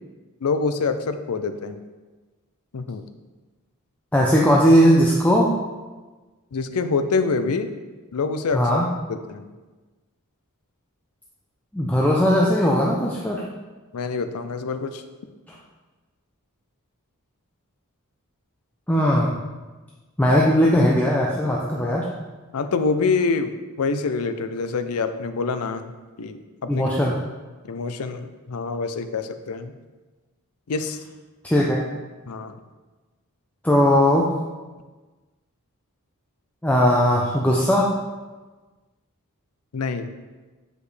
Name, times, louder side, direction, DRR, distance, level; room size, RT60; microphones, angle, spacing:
voice 1, 0.4-1.8 2.7-3.0 6.5-7.7 8.1-8.8 9.1-9.5 13.9-15.0 22.5-25.9 26.2-26.9 27.7-29.7 30.7-31.0 32.3-32.6 39.7-40.1, left 4 dB, 80° left, 9 dB, 0.5 m, -26 dB
voice 2, 4.1-5.5 8.5-8.9 11.7-13.4 15.5-15.6 18.9-19.4 20.2-22.1 26.7-27.2 31.4-31.8 33.6-34.3 36.6-37.9, equal, 5° left, -3 dB, 0.5 m, -18 dB
8.3 x 5.1 x 3.3 m, 1.3 s
head